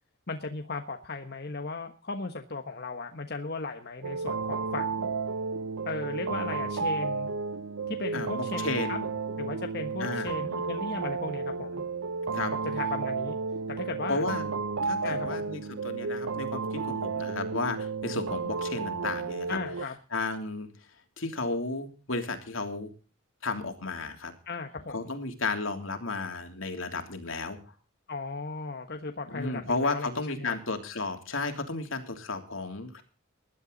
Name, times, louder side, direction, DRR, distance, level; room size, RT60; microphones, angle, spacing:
voice 1, 0.3-5.1 5.8-7.3 7.9-9.0 9.4-11.8 12.7-13.4 13.7-14.2 15.0-15.5 19.5-20.0 24.5-25.1 28.1-30.5, left 3 dB, 50° left, 5 dB, 1.3 m, -36 dB
sound 1, 4.0-19.9, right 4 dB, 90° right, 0.7 m, -32 dB
voice 2, 8.1-9.1 10.0-10.3 12.3-12.5 14.1-14.5 14.8-19.6 20.1-20.7 21.2-22.9 23.4-24.3 24.9-27.6 29.3-33.0, left 3 dB, 75° left, 5 dB, 3.2 m, -33 dB
20.0 x 11.5 x 4.0 m, 0.36 s
head